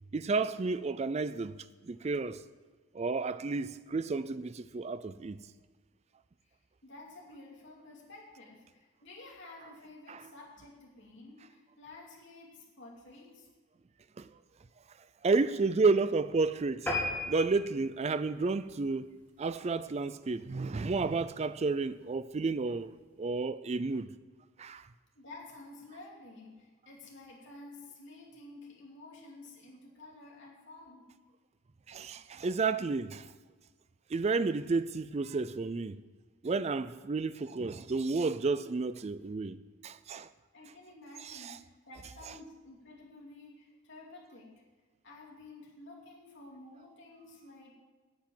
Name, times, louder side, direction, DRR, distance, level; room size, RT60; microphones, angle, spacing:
voice 1, 0.1-1.5 1.8-2.4 2.9-5.4 10.1-10.2 14.2-14.3 15.2-16.9 17.3-19.1 19.4-22.9 23.2-24.1 24.6-24.9 31.9-33.3 34.1-36.0 36.4-39.6 39.8-40.3 41.2-41.6, right 4 dB, 30° right, 0.3 m, -31 dB
voice 2, 6.8-13.5 25.1-31.1 40.5-44.5 45.0-47.7, left 2 dB, 55° left, 2.9 m, -51 dB
sound 1, 16.9-19.6 20.1-20.3 20.7-20.8 21.1-21.2 21.5-21.6, left 2 dB, 10° left, 1.9 m, -37 dB
8.9 x 8.1 x 7.4 m
head